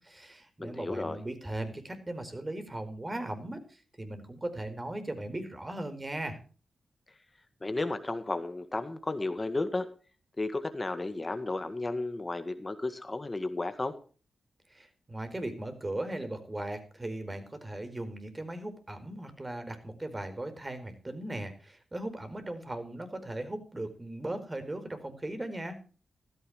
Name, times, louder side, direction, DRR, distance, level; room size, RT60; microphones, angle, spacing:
voice 1, 0.0-6.4 14.7-25.8, right 1 dB, 25° right, 8 dB, 4.6 m, -38 dB
voice 2, 0.6-1.2 7.6-9.9 10.4-13.9, left 2 dB, 30° left, 9 dB, 1.8 m, -33 dB
16.0 x 14.0 x 3.2 m, 0.38 s
cardioid pair, 55°, 0 cm